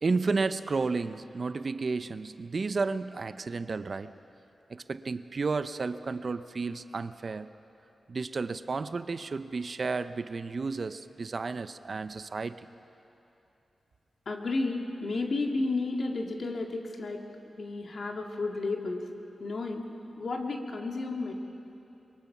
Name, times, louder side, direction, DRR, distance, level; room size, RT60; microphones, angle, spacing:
voice 1, 0.0-4.1 4.7-7.5 8.1-12.6, right 4 dB, 55° right, 12 dB, 0.7 m, -32 dB
voice 2, 14.3-17.2 17.5-19.1 19.4-19.9 20.2-21.3, left 3 dB, 65° left, 2 dB, 2.2 m, -32 dB
23.0 x 23.0 x 5.9 m, 2.9 s
cardioid pair, 55°, 0 cm